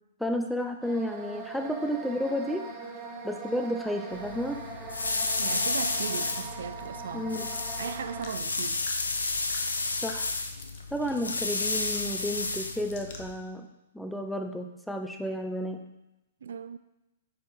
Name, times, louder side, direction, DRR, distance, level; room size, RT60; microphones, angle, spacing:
voice 1, 0.2-2.7 3.2-4.6 7.1-7.5 10.0-10.3 10.9-13.7 13.9-15.8, equal, ahead, 0.6 m, -32 dB
sound 1, 0.8-8.4, right 3 dB, 25° right, 1.0 m, -41 dB
sound 2, 4.1-13.3, left 3 dB, 80° left, 0.6 m, -32 dB
voice 2, 5.4-7.3 7.8-8.9 16.4-16.8, right 7 dB, 65° right, 0.3 m, -37 dB
sound 3, 8.2-13.4, left 4 dB, 55° left, 0.9 m, -48 dB
5.7 x 4.2 x 4.6 m
figure-of-eight pair, 115°, 0 cm